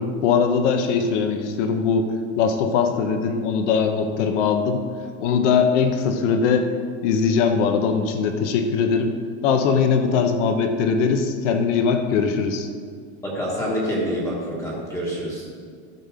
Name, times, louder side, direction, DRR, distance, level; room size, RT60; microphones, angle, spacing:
voice 1, 0.0-2.1 2.4-4.8 5.2-6.7 7.0-9.1 9.4-12.7, left 5 dB, 85° left, 6 dB, 1.0 m, -21 dB
voice 2, 13.2-15.5, equal, 10° left, -5 dB, 1.2 m, -26 dB
12.0 x 5.7 x 4.9 m, 2.1 s
cardioid pair, 175°, 35 cm